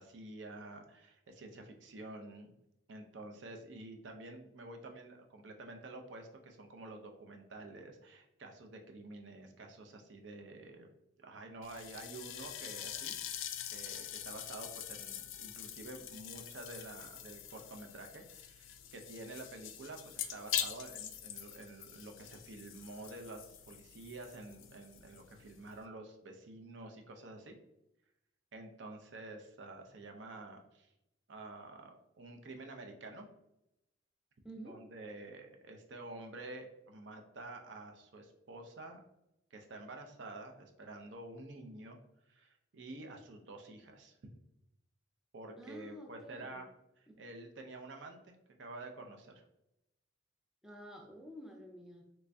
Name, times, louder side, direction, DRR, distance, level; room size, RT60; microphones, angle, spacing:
voice 1, 0.0-2.5 2.9-10.9 11.2-13.2 13.7-27.6 28.5-30.9 31.3-33.3 34.6-39.0 39.5-42.0 42.3-44.2 45.3-46.7 47.2-48.3 48.6-49.4, right 2 dB, 65° right, 4 dB, 0.5 m, -49 dB
sound 1, 11.6-25.9, left 10 dB, 80° left, 0.3 m, -44 dB
voice 2, 34.4-34.8 45.6-46.6 50.6-52.0, equal, 5° right, 0 dB, 0.4 m, -50 dB
3.1 x 2.6 x 3.3 m, 0.85 s
head